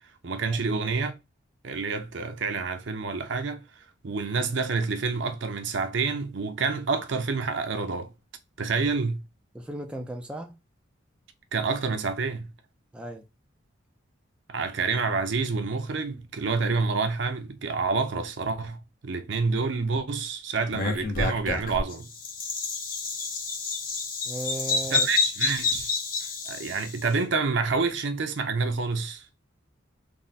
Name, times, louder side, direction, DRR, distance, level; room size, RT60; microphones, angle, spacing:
voice 1, 0.2-1.2 1.6-8.1 8.6-9.3 11.5-12.5 14.5-22.1 24.9-25.9 26.5-29.3, right 4 dB, 65° right, 0.6 m, -28 dB
voice 2, 9.5-10.6 12.9-13.2 24.2-25.1, right 1 dB, 5° right, 0.4 m, -36 dB
Bird vocalization bird call bird song, 20.7-27.0, left 4 dB, 40° left, 0.8 m, -29 dB
3.5 x 2.1 x 4.0 m
head